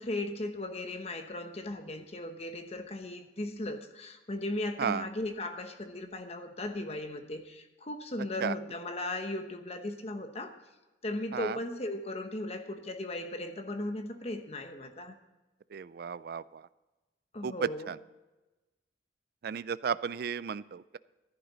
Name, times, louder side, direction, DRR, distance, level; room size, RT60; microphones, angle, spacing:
voice 1, 0.0-10.6 11.0-15.2 17.3-17.9, left 1 dB, 35° left, 7 dB, 1.0 m, -37 dB
voice 2, 15.7-16.6 17.4-18.0 19.4-21.0, right 6 dB, 55° right, 17 dB, 0.3 m, -34 dB
14.5 x 11.0 x 4.0 m, 1.1 s
head